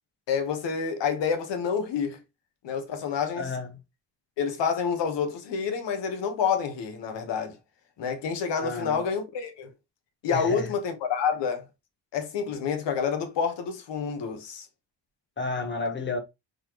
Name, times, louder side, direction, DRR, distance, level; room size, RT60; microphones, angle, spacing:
voice 1, 0.3-2.2 2.6-3.5 4.4-7.6 8.0-9.7 10.2-11.6 12.1-14.7, left 6 dB, 75° left, 1.1 m, -28 dB
voice 2, 3.3-3.8 8.6-9.0 10.3-10.8 15.4-16.2, left 3 dB, 25° left, 0.9 m, -31 dB
4.0 x 3.3 x 2.9 m
cardioid pair, 140°, 43 cm